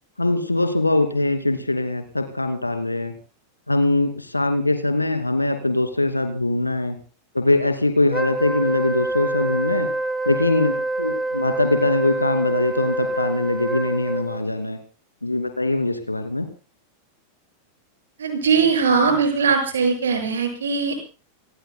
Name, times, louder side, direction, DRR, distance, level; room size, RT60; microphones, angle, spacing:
voice 1, 0.2-3.1 3.7-7.0 7.3-9.9 10.3-14.8 15.2-16.5, left 2 dB, 85° left, 8 dB, 2.5 m, -22 dB
Wind instrument woodwind instrument, 8.1-14.4, right 2 dB, 10° right, 2.3 m, -26 dB
voice 2, 18.2-21.0, right 5 dB, 65° right, 4 dB, 7.0 m, -20 dB
28.5 x 19.0 x 2.2 m, 0.36 s
figure-of-eight pair, 90°, 0 cm